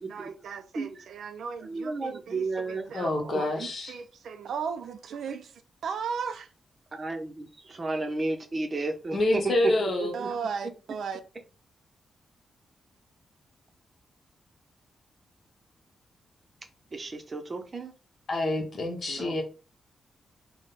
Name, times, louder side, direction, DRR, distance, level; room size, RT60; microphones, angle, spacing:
voice 1, 0.1-5.5 5.8-6.5 10.1-11.2, right 6 dB, 80° right, 0.4 m, -36 dB
voice 2, 1.6-3.1 3.6-3.7 6.9-10.3 16.9-17.9 19.1-19.4, right 3 dB, 30° right, 0.8 m, -33 dB
voice 3, 2.9-4.0 9.1-10.1 18.3-19.4, left 2 dB, 50° left, 1.2 m, -27 dB
3.8 x 2.3 x 4.0 m
wide cardioid pair, 135°, 0 cm